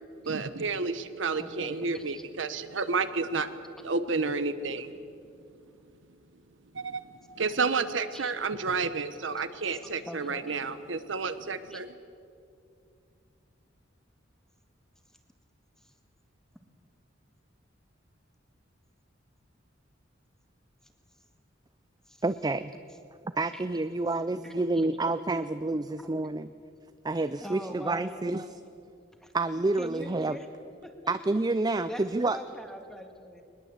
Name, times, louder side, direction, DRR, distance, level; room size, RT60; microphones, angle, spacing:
voice 1, 0.2-3.5 3.8-4.9 6.7-7.0 7.4-11.9, right 4 dB, 75° right, 11 dB, 1.1 m, -30 dB
voice 2, 1.4-2.2 4.9-5.0 8.1-8.3 9.6-10.6 11.7-11.8 22.1-22.2 23.5-23.6 24.3-25.0 25.7-25.9 27.4-28.2 29.2-29.3 29.8-30.5 30.8-31.1 31.9-33.4, equal, 5° left, 4 dB, 1.9 m, -43 dB
voice 3, 22.2-22.7 23.4-26.5 27.0-28.5 29.3-30.4 31.1-32.4, right 2 dB, 20° right, 11 dB, 0.5 m, -28 dB
21.5 x 20.5 x 8.1 m, 2.5 s
head